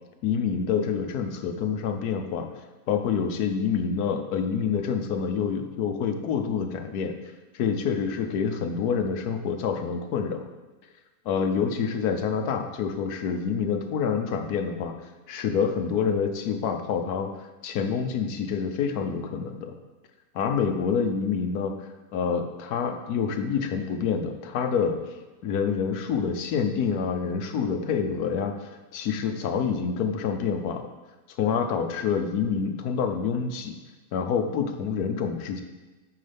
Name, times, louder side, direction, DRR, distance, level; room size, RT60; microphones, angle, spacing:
voice 1, 0.2-2.5 2.9-7.1 7.5-10.4 11.2-14.9 15.3-17.3 17.6-19.7 20.3-21.7 22.1-25.0 25.4-30.9 31.3-33.8 34.1-35.6, left 6 dB, 90° left, 6 dB, 1.3 m, -27 dB
9.3 x 5.4 x 3.4 m, 1.2 s
omnidirectional pair, 1.6 m